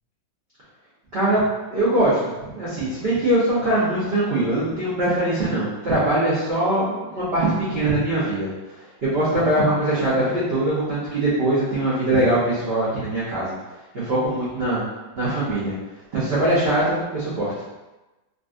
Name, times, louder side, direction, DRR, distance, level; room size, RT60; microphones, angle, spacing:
voice 1, 1.1-1.4 1.7-13.6 13.9-14.8 15.1-15.7 16.1-17.5, right 1 dB, 50° right, -10 dB, 0.7 m, -22 dB
3.8 x 2.5 x 2.4 m, 1.1 s
omnidirectional pair, 2.1 m